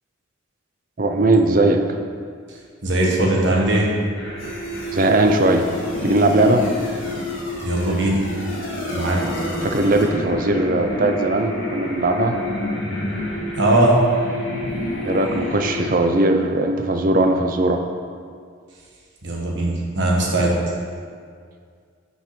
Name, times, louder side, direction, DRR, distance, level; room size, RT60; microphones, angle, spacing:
voice 1, 1.0-1.8 4.9-5.7 6.0-6.7 9.6-12.4 15.0-17.8, right 2 dB, 40° right, 5 dB, 0.6 m, -19 dB
voice 2, 2.8-3.9 7.6-8.2 8.9-9.2 13.6-14.0 19.2-20.6, right 1 dB, 60° right, -2 dB, 1.4 m, -19 dB
sound 1, 4.2-15.9, left 1 dB, 65° left, 1.9 m, -28 dB
5.8 x 5.4 x 6.0 m, 2.1 s
head